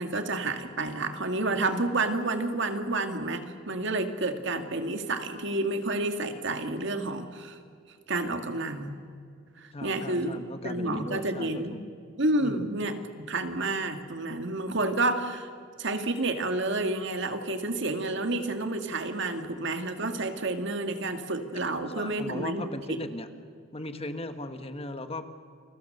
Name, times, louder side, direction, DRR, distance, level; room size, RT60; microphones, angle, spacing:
voice 1, 0.0-7.6 8.1-9.0 9.6-11.7 12.2-15.5 15.8-23.0, right 2 dB, 65° right, 6 dB, 2.1 m, -30 dB
voice 2, 9.7-11.9 12.4-12.7 21.9-23.3 23.7-25.2, left 1 dB, 30° left, 9 dB, 1.4 m, -37 dB
29.0 x 22.0 x 6.7 m, 2.4 s
head